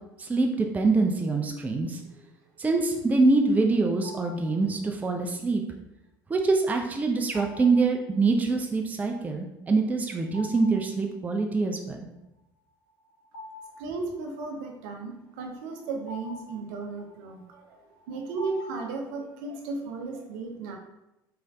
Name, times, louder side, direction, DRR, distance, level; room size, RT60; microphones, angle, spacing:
voice 1, 0.2-2.0 2.6-5.6 6.3-12.0, right 3 dB, 15° right, 3 dB, 0.4 m, -24 dB
voice 2, 1.8-2.2 13.8-17.8 18.1-20.8, right 3 dB, 60° right, 2 dB, 0.6 m, -35 dB
sound 1, 4.0-4.7 7.3-8.0 10.2-11.0 11.3-11.4 12.9-14.4 15.3-19.3, left 2 dB, 65° left, 0.8 m, -46 dB
3.9 x 3.1 x 2.3 m, 0.90 s
figure-of-eight pair, 60°, 12 cm